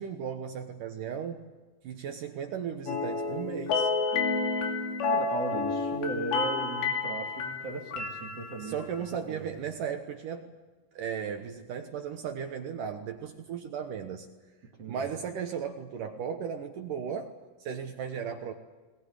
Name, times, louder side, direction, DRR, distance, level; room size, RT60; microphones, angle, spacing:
voice 1, 0.0-1.4 1.8-3.9 8.6-10.5 10.9-14.3 14.9-17.3 17.6-18.5, right 7 dB, 70° right, 5 dB, 2.1 m, -36 dB
sound 1, 2.9-8.9, left 4 dB, 70° left, 4.7 m, -30 dB
voice 2, 5.0-9.5 14.8-15.1, right 3 dB, 40° right, 0 dB, 2.7 m, -37 dB
21.0 x 20.5 x 9.8 m, 1.2 s
omnidirectional pair, 5.3 m